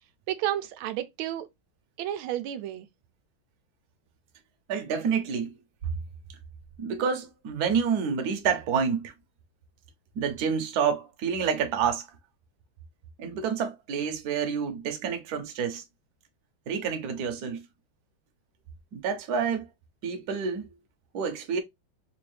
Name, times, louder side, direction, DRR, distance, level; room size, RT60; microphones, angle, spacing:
voice 1, 0.3-1.5 2.0-2.9, right 12 dB, 90° right, 1.4 m, -31 dB
voice 2, 4.7-5.6 6.8-9.1 10.1-12.1 13.2-15.8 16.7-17.7 18.9-19.7 20.0-20.7 21.1-21.6, right 6 dB, 60° right, 1.2 m, -28 dB
4.3 x 2.5 x 3.2 m
omnidirectional pair, 2.2 m